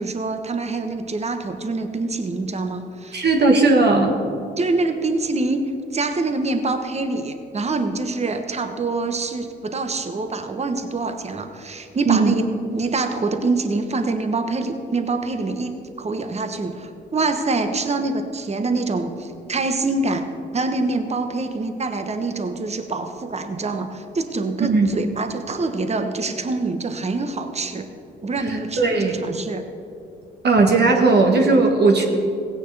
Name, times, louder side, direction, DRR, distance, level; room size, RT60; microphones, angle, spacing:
voice 1, 0.0-3.2 4.6-5.6 5.9-12.5 12.7-20.2 20.5-27.9 28.2-29.6, right 3 dB, 30° right, 7 dB, 1.1 m, -25 dB
voice 2, 3.1-4.2 12.1-12.3 24.7-24.9 28.5-29.2 30.4-32.0, right 3 dB, 55° right, 2 dB, 1.4 m, -17 dB
16.5 x 9.1 x 3.4 m, 2.5 s
supercardioid pair, 55°, 21 cm